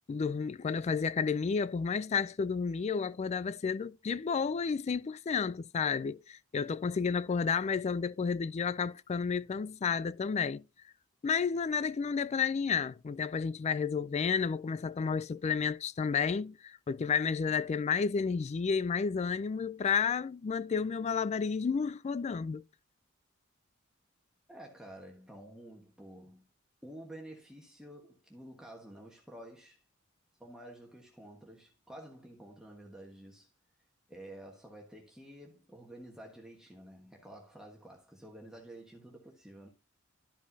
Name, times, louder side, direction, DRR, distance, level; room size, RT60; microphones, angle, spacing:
voice 1, 0.1-10.6 11.2-22.6, left 5 dB, 35° left, 0.3 m, -31 dB
voice 2, 24.5-26.5 26.8-29.8 30.4-33.5 34.1-39.7, right 1 dB, 5° right, 1.3 m, -50 dB
12.5 x 5.2 x 2.7 m
head